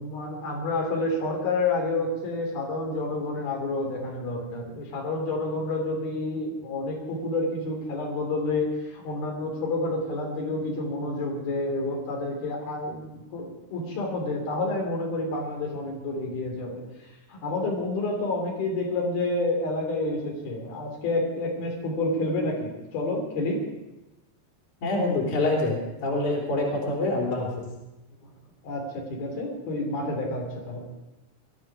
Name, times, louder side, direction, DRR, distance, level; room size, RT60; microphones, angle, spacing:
voice 1, 0.0-16.8 17.3-23.6 28.2-28.3 28.6-30.9, left 2 dB, 90° left, 0 dB, 5.1 m, -29 dB
voice 2, 24.8-27.7, left 2 dB, 55° left, -2 dB, 4.7 m, -26 dB
21.0 x 13.0 x 4.9 m, 1.0 s
omnidirectional pair, 4.2 m